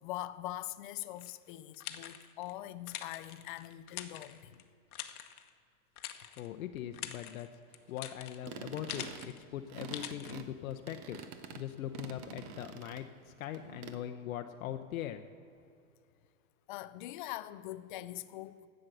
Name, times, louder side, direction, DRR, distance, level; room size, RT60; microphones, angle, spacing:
voice 1, 0.0-4.6 16.7-18.7, left 15 dB, 35° left, 0.4 m, -43 dB
sound 1, 1.2-2.5 2.9-4.6 4.9-5.5 6.0-6.5 6.8-9.4 9.9-10.3, left 10 dB, 90° left, 1.1 m, -45 dB
voice 2, 6.4-7.5 7.9-11.2 11.5-15.2, left 11 dB, 70° left, 0.8 m, -41 dB
sound 2, 8.4-13.2 13.5-14.0, right 7 dB, 25° right, 0.5 m, -47 dB
12.0 x 7.7 x 8.0 m
supercardioid pair, 150°, 43 cm